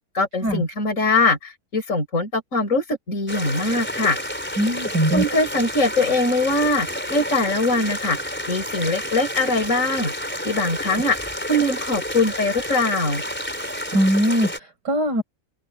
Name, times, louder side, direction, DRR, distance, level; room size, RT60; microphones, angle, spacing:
voice 1, 0.1-4.2 5.1-10.1 10.4-11.2 11.5-13.2, left 2 dB, 45° left, 5.5 m, -22 dB
sound 1, 3.3-14.6, equal, 5° left, 3.9 m, -30 dB
voice 2, 4.6-5.2 13.9-15.2, equal, 75° right, 6.5 m, -21 dB
open air
omnidirectional pair, 1.8 m